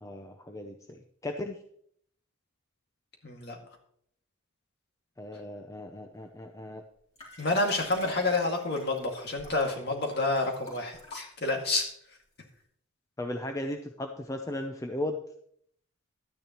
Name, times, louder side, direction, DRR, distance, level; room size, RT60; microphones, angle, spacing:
voice 1, 0.0-1.6 5.2-6.8 13.2-15.2, left 1 dB, 15° left, 4 dB, 0.5 m, -36 dB
voice 2, 3.2-3.6 7.4-12.0, left 2 dB, 50° left, 1 dB, 2.0 m, -29 dB
Liquid, 7.2-11.7 12.4-12.5, equal, 30° left, 3.2 m, -46 dB
12.0 x 9.8 x 3.0 m, 0.66 s
head